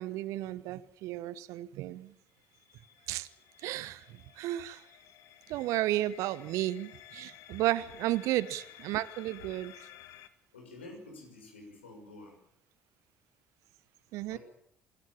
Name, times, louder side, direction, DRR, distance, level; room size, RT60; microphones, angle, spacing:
voice 1, 0.0-2.1 3.1-3.3 3.6-4.9 5.5-9.7 14.1-14.4, right 15 dB, 55° right, 1.0 m, -33 dB
sound 1, 2.2-10.3, left 12 dB, 55° left, 1.5 m, -54 dB
voice 2, 10.5-12.4 14.3-14.4, left 2 dB, 75° left, 6.1 m, -49 dB
26.0 x 17.0 x 7.3 m
figure-of-eight pair, 55°, 6 cm